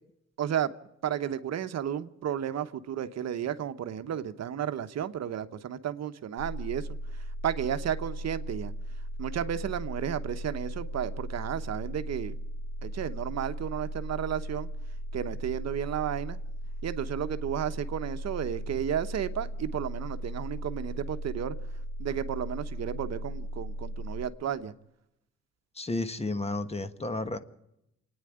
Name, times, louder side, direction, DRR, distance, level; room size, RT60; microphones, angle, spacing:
voice 1, 0.4-0.7 1.0-6.9 7.2-8.7 9.2-12.3 12.8-14.7 15.1-16.4 16.8-21.5 22.0-24.7, right 9 dB, 60° right, 1.0 m, -33 dB
sound 1, 6.4-24.3, right 1 dB, 60° left, 1.9 m, -37 dB
voice 2, 25.8-27.4, left 2 dB, 20° left, 1.3 m, -32 dB
27.0 x 9.7 x 9.9 m
cardioid pair, 90°, 30 cm